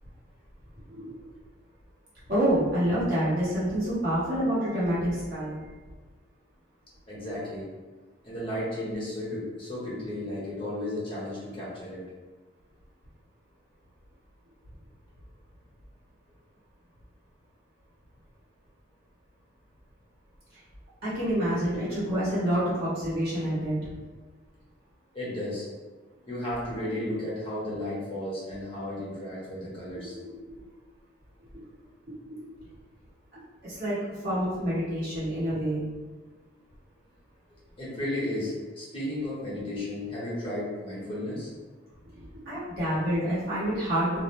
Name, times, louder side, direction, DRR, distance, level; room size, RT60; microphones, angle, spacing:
voice 1, 2.3-5.6 21.0-23.9 30.1-30.2 31.5-31.6 32.3-32.5 33.3-34.0 34.2-35.8 42.1-44.2, equal, 55° right, -11 dB, 1.2 m, -27 dB
voice 2, 7.1-7.7 8.2-12.0 25.1-25.7 26.3-30.2 37.8-41.5, left 1 dB, 30° left, -8 dB, 0.9 m, -34 dB
2.5 x 2.1 x 3.0 m, 1.3 s
head